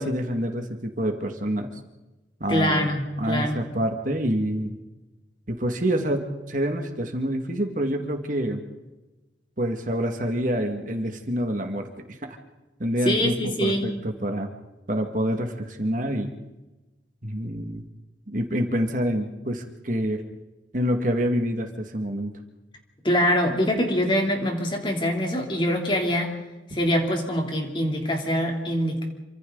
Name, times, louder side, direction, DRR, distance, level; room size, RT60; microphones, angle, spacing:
voice 1, 0.0-1.7 2.4-2.9 3.2-4.8 5.5-8.6 9.6-12.2 12.8-13.3 13.6-13.9 14.2-14.5 14.9-16.3 17.2-17.8 18.3-20.2 20.7-22.3, equal, 45° right, 4 dB, 2.2 m, -27 dB
voice 2, 2.5-3.6 13.0-13.9 23.0-26.3 26.7-29.0, equal, 25° left, 2 dB, 3.4 m, -24 dB
28.0 x 25.5 x 4.1 m, 1.1 s
head